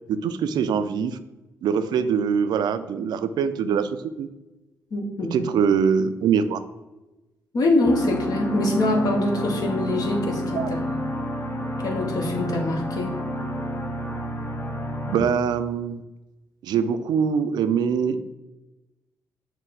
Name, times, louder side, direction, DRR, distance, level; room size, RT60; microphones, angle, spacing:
voice 1, 0.1-1.2 1.6-3.9 4.2-4.3 5.3-6.6 10.5-10.7 15.0-16.0 16.6-18.2, right 7 dB, 75° right, 11 dB, 0.3 m, -23 dB
voice 2, 4.9-5.4 7.5-11.1 11.8-13.2, left 1 dB, 60° left, 1 dB, 1.1 m, -24 dB
sound 1, 7.8-15.2, left 1 dB, 30° left, 0.7 m, -29 dB
6.2 x 2.1 x 3.9 m, 1.0 s
supercardioid pair, 60°, 7 cm